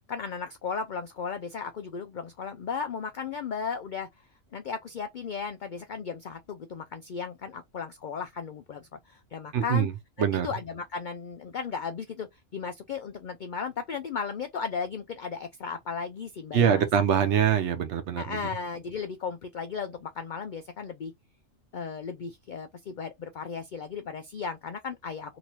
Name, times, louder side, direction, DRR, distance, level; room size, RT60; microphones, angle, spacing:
voice 1, 0.1-4.1 4.5-9.9 10.2-16.9 18.2-21.1 21.7-25.4, left 6 dB, 90° left, 0.4 m, -35 dB
voice 2, 9.5-9.9 10.2-10.5 16.5-18.4, right 8 dB, 65° right, 0.9 m, -24 dB
3.0 x 2.7 x 2.8 m
omnidirectional pair, 1.4 m